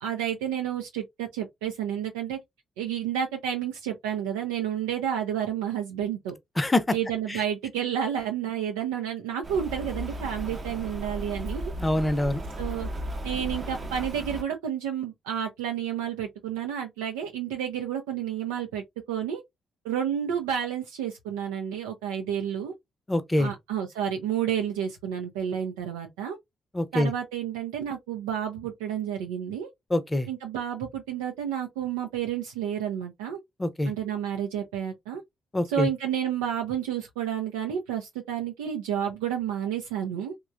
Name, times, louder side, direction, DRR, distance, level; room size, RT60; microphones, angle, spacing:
voice 1, 0.0-2.4 2.8-6.3 6.9-11.7 12.6-12.9 13.2-19.4 19.8-22.7 23.4-26.4 26.9-29.7 30.3-33.4 33.8-35.2 35.7-40.3, right 9 dB, 80° right, 0.4 m, -30 dB
voice 2, 6.6-6.9 7.3-7.4 11.8-12.4 23.1-23.5 26.7-27.1 29.9-30.3 33.6-33.9 35.5-35.9, left 1 dB, 20° left, 0.7 m, -25 dB
Rain, 9.4-14.4, right 1 dB, 40° right, 0.7 m, -35 dB
3.0 x 2.2 x 2.5 m
hypercardioid pair, 40°, 0 cm